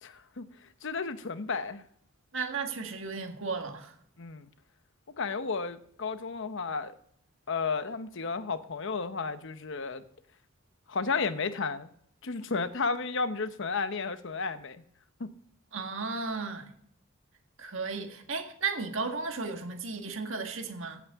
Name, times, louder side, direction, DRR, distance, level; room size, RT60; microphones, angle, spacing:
voice 1, 0.0-0.5 0.8-1.8 4.2-4.5 5.2-7.0 7.5-10.0 10.9-11.9 12.2-14.8 15.2-15.3, left 4 dB, 65° left, 0.9 m, -33 dB
voice 2, 2.3-3.9 15.7-16.7 17.6-21.0, right 4 dB, 70° right, 1.6 m, -34 dB
16.0 x 8.6 x 3.6 m
head